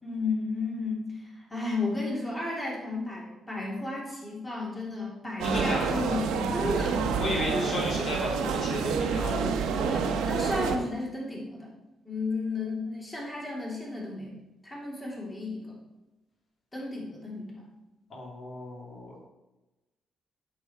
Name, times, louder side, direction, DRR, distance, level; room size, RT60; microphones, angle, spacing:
voice 1, 0.0-7.0 7.5-7.8 9.8-11.7 12.0-14.3 14.6-15.7 16.7-17.6, left 3 dB, 20° left, -4 dB, 2.9 m, -33 dB
voice 2, 5.4-6.1 7.1-9.5 18.1-19.3, left 1 dB, 55° left, -2 dB, 2.4 m, -34 dB
sound 1, 5.4-10.8, right 5 dB, 90° right, 0.8 m, -28 dB
8.2 x 6.9 x 4.4 m, 1.1 s
cardioid pair, 90°, 0 cm